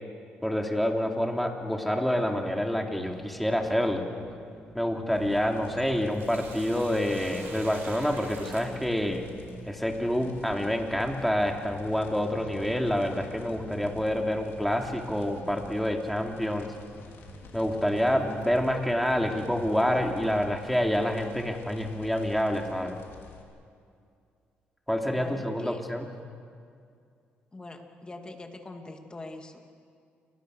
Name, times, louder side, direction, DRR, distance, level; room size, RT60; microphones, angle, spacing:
voice 1, 0.4-4.1 4.7-9.2 9.6-16.7 17.5-23.0 24.9-26.1, equal, ahead, 2 dB, 3.3 m, -27 dB
sound 1, 3.0-20.7, right 1 dB, 20° right, 2.8 m, -49 dB
sound 2, 5.1-23.4, left 5 dB, 75° left, 4.0 m, -51 dB
Sink (filling or washing), 6.1-9.5 11.9-12.0 13.9-14.1 14.6-14.7 15.5-15.6 16.3-16.4 17.1-19.0, right 3 dB, 65° right, 6.1 m, -47 dB
voice 2, 25.1-25.8 27.5-29.6, left 2 dB, 20° left, 4 dB, 2.8 m, -43 dB
29.0 x 23.0 x 6.7 m, 2.3 s
cardioid pair, 90°, 4 cm